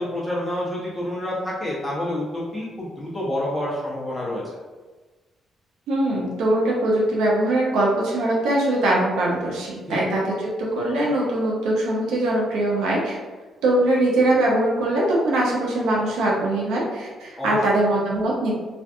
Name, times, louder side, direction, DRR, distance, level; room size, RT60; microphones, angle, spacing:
voice 1, 0.0-4.4 9.9-10.0 17.4-17.6, left 1 dB, 5° left, -7 dB, 0.9 m, -28 dB
voice 2, 5.9-13.2 13.6-18.5, right 1 dB, 90° right, -3 dB, 0.6 m, -22 dB
2.5 x 2.2 x 2.6 m, 1.3 s
cardioid pair, 90°, 0 cm